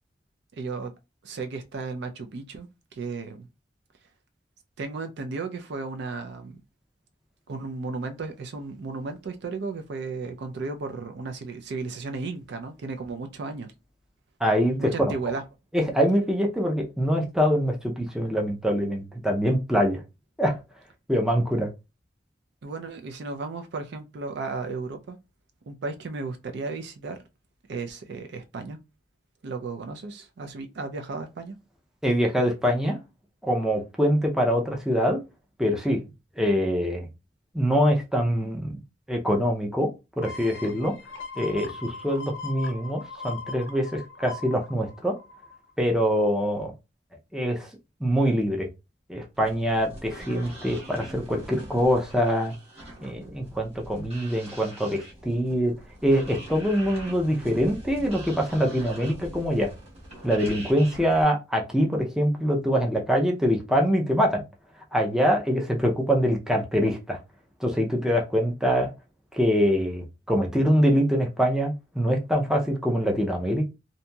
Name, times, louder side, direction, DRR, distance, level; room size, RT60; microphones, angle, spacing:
voice 1, 0.6-0.9 1.2-2.7 2.9-3.5 4.8-6.6 7.5-13.7 14.8-15.4 22.6-25.2 25.7-27.2 27.7-28.8 29.4-31.5, right 3 dB, 65° right, 0.4 m, -34 dB
voice 2, 14.4-15.1 15.7-20.0 20.4-20.6 21.1-21.7 32.0-33.0 33.4-35.2 35.6-36.0 36.4-37.1 37.5-38.8 39.1-39.9 40.2-40.9 41.4-45.2 45.8-46.7 47.3-47.7 48.0-48.7 49.1-52.5 53.0-55.7 56.0-59.7 60.2-64.4 64.9-67.2 67.6-68.9 69.3-73.6, equal, 5° right, 0.4 m, -24 dB
sound 1, 40.2-45.7 46.1-46.2, left 4 dB, 85° left, 0.6 m, -40 dB
sound 2, 49.3-61.2, right 1 dB, 35° right, 1.1 m, -43 dB
2.8 x 2.6 x 2.2 m
head